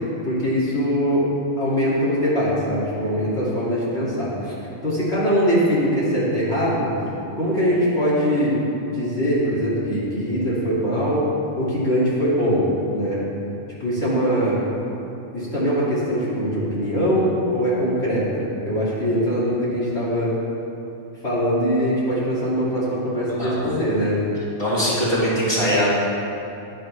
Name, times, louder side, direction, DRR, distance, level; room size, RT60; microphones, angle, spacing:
voice 1, 0.3-1.3 1.6-4.5 4.8-6.9 7.4-8.6 8.9-11.2 11.6-13.2 13.8-14.6 15.3-20.4 21.2-24.2, equal, 55° left, -9 dB, 2.8 m, -22 dB
voice 2, 23.3-23.6 24.6-25.9, equal, 20° left, -10 dB, 3.2 m, -21 dB
21.5 x 7.6 x 3.3 m, 2.8 s
omnidirectional pair, 1.3 m